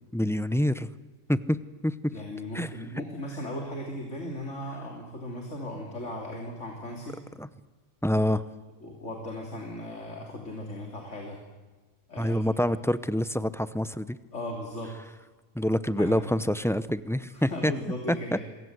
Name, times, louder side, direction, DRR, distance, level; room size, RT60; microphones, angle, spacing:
voice 1, 0.1-0.9 1.3-2.1 2.5-2.7 7.4-7.5 8.0-8.4 12.2-14.1 15.5-17.7 18.1-18.2, left 1 dB, 5° left, 14 dB, 0.4 m, -26 dB
voice 2, 2.1-7.2 8.2-8.3 8.8-11.4 12.1-12.4 14.3-14.9 16.0-16.3 17.3-18.4, left 1 dB, 60° left, 1 dB, 3.3 m, -37 dB
27.0 x 23.0 x 8.0 m, 1.3 s
omnidirectional pair, 1.4 m